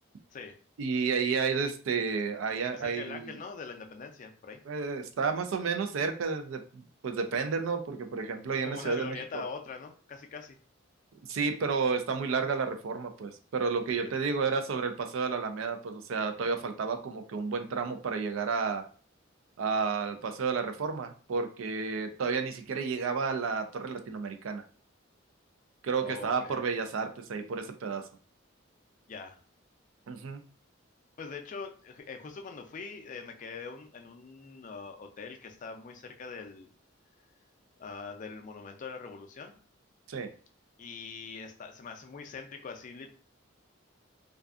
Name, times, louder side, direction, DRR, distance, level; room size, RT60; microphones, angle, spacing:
voice 1, 0.8-3.4 4.7-9.4 11.3-18.9 19.6-24.6 25.8-28.0 30.1-30.4 40.1-40.3, right 5 dB, 85° right, 7 dB, 0.4 m, -31 dB
voice 2, 2.7-4.6 8.6-10.6 13.9-14.1 26.0-26.6 29.1-29.4 31.2-36.7 37.8-39.6 40.8-43.1, left 5 dB, 40° left, 5 dB, 0.4 m, -43 dB
2.5 x 2.3 x 2.3 m, 0.40 s
head